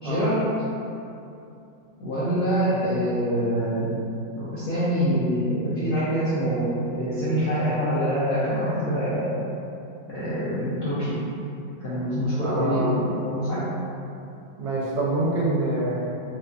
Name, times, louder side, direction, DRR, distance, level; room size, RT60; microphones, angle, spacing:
voice 1, 0.0-0.4 2.0-3.9 4.4-9.3 10.1-11.2 11.8-13.6, equal, 70° left, -11 dB, 0.8 m, -25 dB
voice 2, 12.4-13.0 14.6-16.2, right 2 dB, 75° right, -5 dB, 1.2 m, -26 dB
4.0 x 2.3 x 2.3 m, 2.7 s
omnidirectional pair, 2.0 m